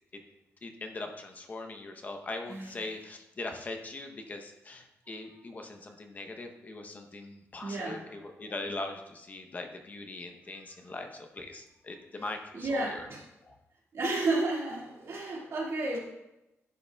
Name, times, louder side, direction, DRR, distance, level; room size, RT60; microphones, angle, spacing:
voice 1, 0.6-13.0 13.4-13.6, left 2 dB, 35° left, 4 dB, 0.7 m, -41 dB
voice 2, 2.5-2.8 7.6-8.0 12.5-13.2 13.9-16.0, right 2 dB, 65° right, -3 dB, 2.0 m, -32 dB
11.0 x 5.6 x 2.3 m, 0.92 s
wide cardioid pair, 130°, 5 cm